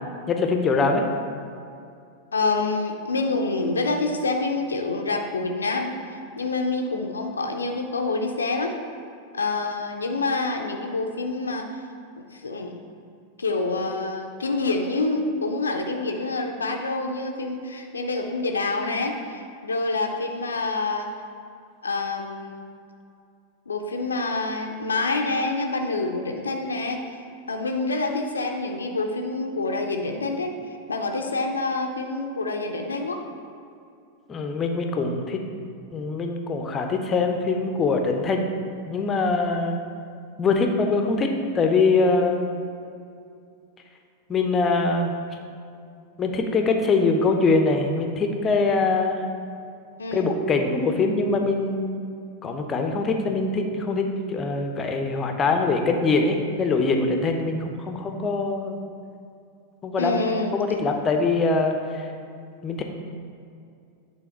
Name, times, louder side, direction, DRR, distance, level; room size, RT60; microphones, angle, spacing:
voice 1, 0.3-1.1 34.3-35.4 35.9-38.4 38.9-39.8 40.4-42.5 44.3-45.1 46.2-49.2 50.1-51.9 52.4-58.8 59.8-60.3 60.5-62.1 62.6-62.8, left 3 dB, 25° left, 4 dB, 0.7 m, -23 dB
voice 2, 2.3-5.9 6.4-8.8 9.3-11.8 12.2-12.7 13.4-21.1 21.8-22.7 23.7-27.2 27.5-30.5 30.9-33.2 50.0-50.4 60.0-60.5, left 3 dB, 75° left, 3 dB, 0.5 m, -27 dB
9.2 x 3.5 x 4.5 m, 2.5 s
figure-of-eight pair, 90°, 0 cm